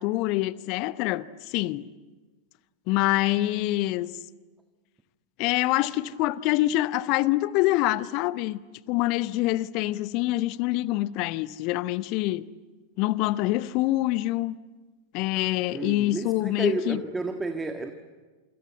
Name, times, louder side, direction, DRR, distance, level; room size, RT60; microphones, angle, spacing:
voice 1, 0.0-1.8 2.9-4.2 5.4-8.6 8.9-12.4 13.0-14.6 15.1-17.0, left 17 dB, 45° left, 0.8 m, -25 dB
voice 2, 15.7-17.9, right 3 dB, 10° right, 1.6 m, -31 dB
28.0 x 25.5 x 8.3 m
figure-of-eight pair, 90°, 0 cm